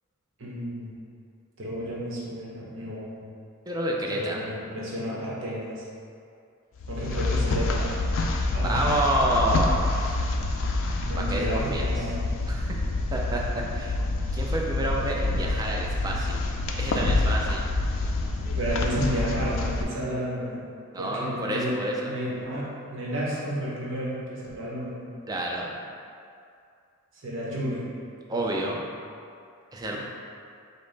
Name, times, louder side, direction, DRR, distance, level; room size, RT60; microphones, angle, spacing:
voice 1, 0.4-0.9 1.6-3.3 4.1-5.8 6.9-8.0 8.5-8.9 11.0-12.2 18.6-20.6 21.0-21.7 22.1-25.0 27.2-27.9 28.3-28.7 29.9-30.0, equal, 60° right, -6 dB, 0.9 m, -32 dB
voice 2, 3.7-4.4 8.6-10.0 11.3-11.9 12.5-12.7 13.1-13.4 13.7-14.0 14.3-16.4 16.8-17.6 20.9-22.1 25.3-25.7 28.3-28.8 29.7-30.0, right 1 dB, 15° right, -2 dB, 0.4 m, -28 dB
sound 1, 6.8-19.8, left 2 dB, 60° left, 0.4 m, -27 dB
5.3 x 2.0 x 3.9 m, 2.4 s
head